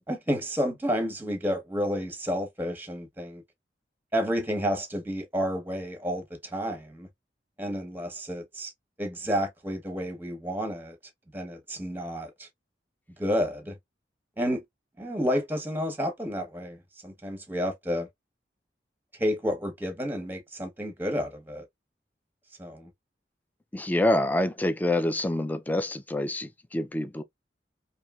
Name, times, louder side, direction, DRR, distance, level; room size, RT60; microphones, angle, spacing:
voice 1, 0.1-3.4 4.1-7.1 7.6-8.7 9.0-11.0 11.3-12.5 13.2-13.8 14.4-14.6 15.0-16.8 17.0-18.1 19.2-21.7 22.6-22.9, equal, 10° right, 0.8 m, -30 dB
voice 2, 23.7-27.2, left 1 dB, 10° left, 0.3 m, -26 dB
3.1 x 2.7 x 2.2 m
head